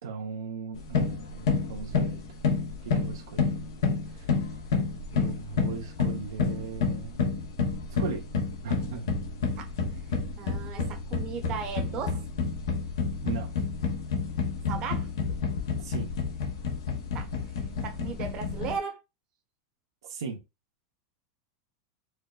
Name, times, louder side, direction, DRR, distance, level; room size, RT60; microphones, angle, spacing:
voice 1, 0.0-2.2 2.8-3.6 4.0-4.3 5.1-7.2 8.0-8.3 8.6-9.1 13.2-13.5 15.8-16.1 20.1-20.4, right 6 dB, 90° right, 0.8 m, -38 dB
sound 1, 0.7-18.8, left 5 dB, 75° left, 0.8 m, -30 dB
voice 2, 10.4-12.2 14.7-15.1 17.1-17.3 17.8-19.0, right 6 dB, 35° right, 0.9 m, -36 dB
4.5 x 2.1 x 2.3 m
supercardioid pair, 140°, 2 cm